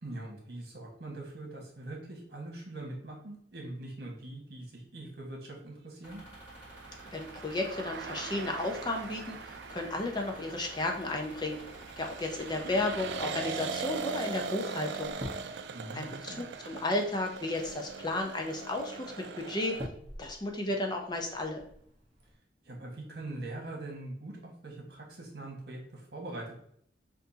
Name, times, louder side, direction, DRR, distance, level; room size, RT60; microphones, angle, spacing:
voice 1, 0.0-6.2 15.7-16.4 22.6-26.5, right 2 dB, 65° right, -1 dB, 1.5 m, -42 dB
sound 1, 6.0-13.2, right 1 dB, 10° right, 1.7 m, -50 dB
sound 2, 6.4-19.9, right 5 dB, 80° right, 0.4 m, -41 dB
voice 2, 7.1-11.6 12.0-15.1 15.4-15.6 15.9-19.8 20.2-21.6, left 2 dB, 25° left, 2 dB, 0.6 m, -33 dB
sound 3, 11.5-22.4, equal, 30° right, 1.0 m, -50 dB
5.8 x 2.6 x 2.7 m, 0.66 s
head